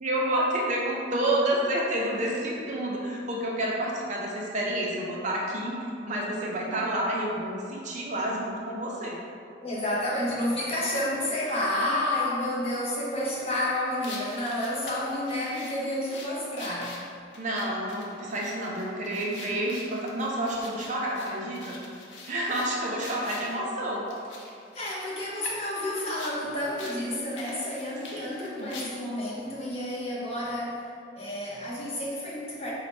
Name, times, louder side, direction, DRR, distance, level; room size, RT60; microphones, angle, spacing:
voice 1, 0.0-5.8 6.1-9.2 17.4-21.8 22.3-24.0 28.1-28.7, right 1 dB, 40° right, -3 dB, 0.5 m, -29 dB
voice 2, 9.6-17.0 24.7-30.9 31.1-32.7, left 1 dB, 30° left, -6 dB, 0.7 m, -30 dB
sound 1, 14.0-23.6 24.1-26.4 26.8-27.0 27.3-29.2, left 3 dB, 70° left, 0.6 m, -44 dB
4.2 x 2.2 x 4.1 m, 2.4 s
head